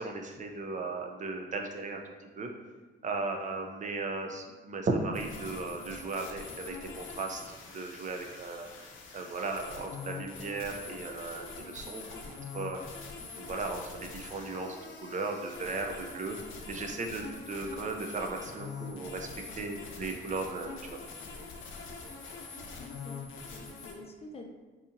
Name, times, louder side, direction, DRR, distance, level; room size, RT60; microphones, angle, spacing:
voice 1, 0.0-2.5 3.0-7.4 7.7-8.7 9.1-12.1 12.5-12.8 13.4-16.4 16.7-20.7, right 3 dB, 40° right, 3 dB, 0.4 m, -36 dB
sound 1, 5.1-23.9, left 4 dB, 85° left, 0.6 m, -44 dB
voice 2, 22.5-24.5, left 2 dB, 30° left, 2 dB, 0.4 m, -48 dB
4.0 x 2.7 x 2.5 m, 1.3 s
cardioid pair, 90°, 20 cm